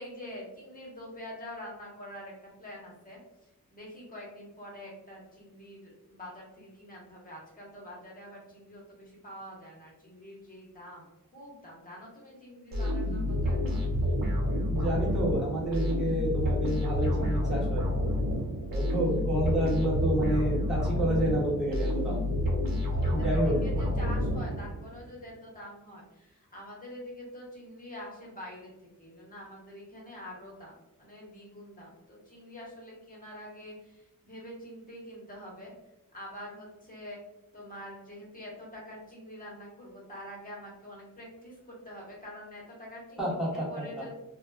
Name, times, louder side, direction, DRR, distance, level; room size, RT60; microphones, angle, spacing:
voice 1, 0.0-3.2 3.7-13.9 22.9-35.7 36.1-37.2 37.5-44.2, equal, 25° left, -3 dB, 1.0 m, -46 dB
sound 1, 12.7-24.9, left 1 dB, 75° right, 0.9 m, -29 dB
voice 2, 14.7-17.8 18.7-22.2 23.1-23.6 43.2-44.0, right 1 dB, ahead, -6 dB, 1.1 m, -29 dB
2.9 x 2.2 x 2.2 m, 0.94 s
wide cardioid pair, 90°, 34 cm